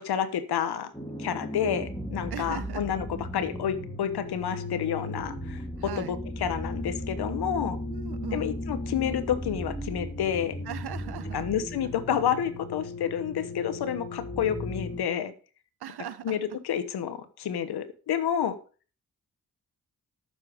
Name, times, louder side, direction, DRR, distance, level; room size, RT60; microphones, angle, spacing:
voice 1, 0.1-0.9 1.2-3.0 3.3-5.6 6.0-7.8 8.3-10.5 11.3-15.3 16.2-18.5, left 9 dB, 90° left, 13 dB, 1.2 m, -29 dB
sound 1, 0.9-15.0, left 1 dB, 10° left, 3.3 m, -36 dB
voice 2, 2.3-2.8 5.8-6.2 7.9-8.5 10.6-11.4 15.8-16.4, right 10 dB, 85° right, 14 dB, 1.1 m, -39 dB
13.5 x 6.9 x 5.0 m, 0.37 s
cardioid pair, 55°, 38 cm